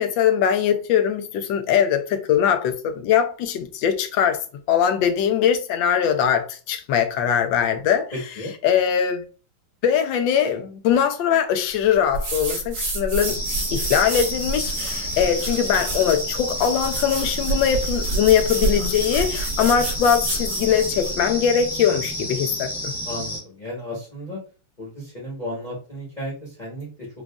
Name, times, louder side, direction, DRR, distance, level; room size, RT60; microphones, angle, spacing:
voice 1, 0.0-8.1 8.6-9.2 9.8-13.4 13.7-22.9, left 8 dB, 75° left, 1.2 m, -21 dB
voice 2, 8.1-8.5 23.1-24.4 24.8-27.1, left 1 dB, 30° left, 1.0 m, -33 dB
sound 1, 12.1-21.2, right 3 dB, 70° right, 2.0 m, -28 dB
sound 2, 13.2-23.4, left 1 dB, 5° right, 0.3 m, -31 dB
5.0 x 2.4 x 2.3 m
omnidirectional pair, 2.2 m